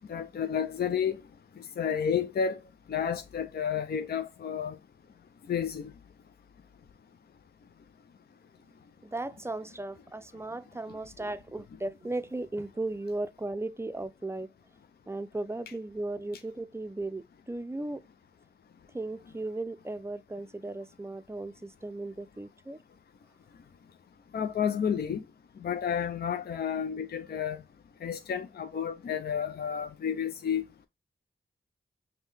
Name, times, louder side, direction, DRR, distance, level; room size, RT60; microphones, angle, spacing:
voice 1, 0.1-1.2 1.6-2.6 2.9-4.8 5.5-5.9 24.3-25.2 25.6-27.6 28.0-30.6, left 7 dB, 50° left, 0.4 m, -31 dB
voice 2, 9.0-14.5 15.1-18.0 18.9-22.8, right 2 dB, 15° right, 0.4 m, -36 dB
5.3 x 2.2 x 3.2 m
cardioid pair, 50°, 20 cm